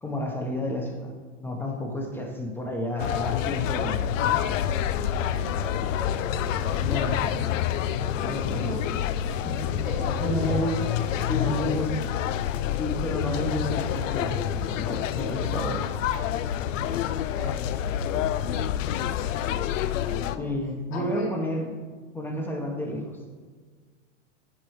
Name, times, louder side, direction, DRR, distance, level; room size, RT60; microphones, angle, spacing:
voice 1, 0.0-1.1 1.4-4.1 6.8-7.5 8.2-8.7 9.4-9.7 10.2-10.8 11.3-11.9 12.8-15.8 20.4-21.7 22.1-23.1, left 1 dB, 5° left, 2 dB, 1.0 m, -30 dB
sound 1, 3.0-20.4, left 10 dB, 80° left, 0.6 m, -27 dB
voice 2, 4.9-7.1 7.3-7.4 8.5-9.0 9.7-11.4 11.6-11.8 17.3-20.6 20.9-21.3, left 2 dB, 30° left, -2 dB, 2.2 m, -39 dB
13.5 x 5.2 x 3.2 m, 1.5 s
supercardioid pair, 140°, 38 cm